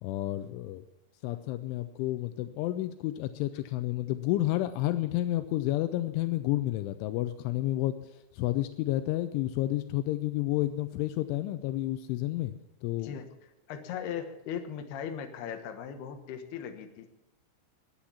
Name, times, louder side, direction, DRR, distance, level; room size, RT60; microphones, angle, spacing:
voice 1, 0.0-0.8 1.2-12.5 12.8-13.2, left 15 dB, 85° left, 10 dB, 3.1 m, -30 dB
voice 2, 13.0-13.3 13.7-17.1, left 8 dB, 65° left, 6 dB, 3.0 m, -38 dB
16.0 x 10.0 x 7.2 m, 0.95 s
omnidirectional pair, 5.5 m